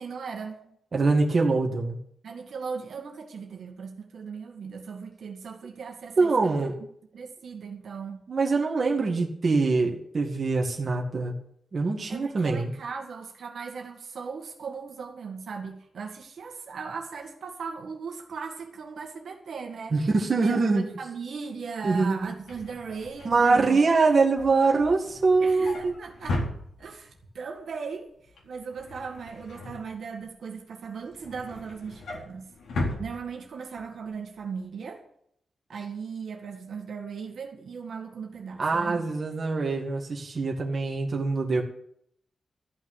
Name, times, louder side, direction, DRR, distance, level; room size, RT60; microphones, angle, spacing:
voice 1, 0.0-0.7 2.2-6.5 7.1-8.2 12.1-20.0 20.4-23.8 25.4-26.4 26.8-32.5 33.0-35.0 35.7-39.1, right 5 dB, 65° right, 2 dB, 2.0 m, -38 dB
voice 2, 0.9-2.0 6.2-6.7 8.3-11.3 11.7-12.7 19.9-20.8 21.8-22.2 23.2-25.9 38.6-41.6, right 3 dB, 35° right, -1 dB, 2.0 m, -24 dB
Drawer open or close, 22.2-27.2 27.6-27.9 28.2-30.4 30.8-33.8 34.2-34.4 34.6-34.7, left 2 dB, 85° left, 4.2 m, -37 dB
13.5 x 6.0 x 9.1 m, 0.69 s
wide cardioid pair, 175°, 0 cm